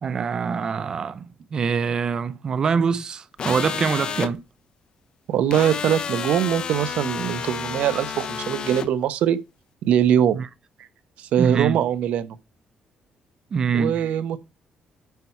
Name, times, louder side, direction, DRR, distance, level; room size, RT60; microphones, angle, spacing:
voice 1, 0.0-4.4 10.3-10.5 11.4-11.8 13.5-14.0, right 6 dB, 30° right, 0.5 m, -24 dB
sound 1, 3.4-4.3 5.5-8.9, left 7 dB, 40° left, 0.6 m, -30 dB
voice 2, 5.3-9.4 9.8-10.4 10.8-10.9 11.2-12.4 13.7-14.4, right 10 dB, 70° right, 0.8 m, -22 dB
9.4 x 4.5 x 4.4 m
cardioid pair, 175°, 2 cm